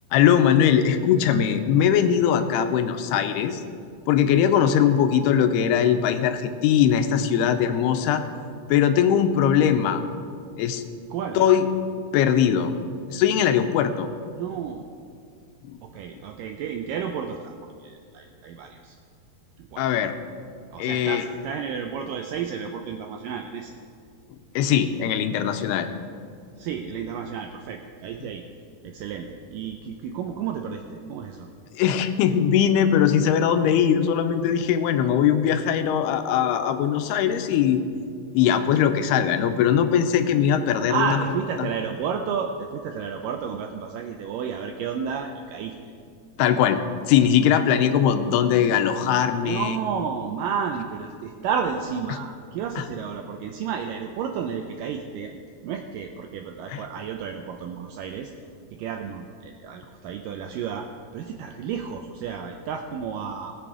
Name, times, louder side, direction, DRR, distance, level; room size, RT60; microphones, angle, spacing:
voice 1, 0.1-3.6 4.1-8.2 8.7-10.0 10.6-10.8 11.4-11.7 12.1-12.7 13.1-14.1 15.7-15.8 19.8-20.1 20.8-21.2 24.6-25.9 28.2-28.3 31.7-37.8 38.3-41.2 41.6-41.7 46.4-46.8 47.1-49.8 52.8-52.9 56.7-56.8, left 9 dB, 85° left, 8 dB, 2.7 m, -20 dB
voice 2, 11.1-11.4 14.3-14.9 15.8-17.5 17.8-19.0 19.6-19.9 20.7-23.8 26.6-28.4 28.8-31.5 40.9-45.7 49.3-55.3 55.6-58.3 58.8-60.9 61.1-63.6, right 7 dB, 85° right, 4 dB, 1.9 m, -31 dB
18.5 x 7.0 x 4.9 m, 2.3 s
omnidirectional pair, 4.5 m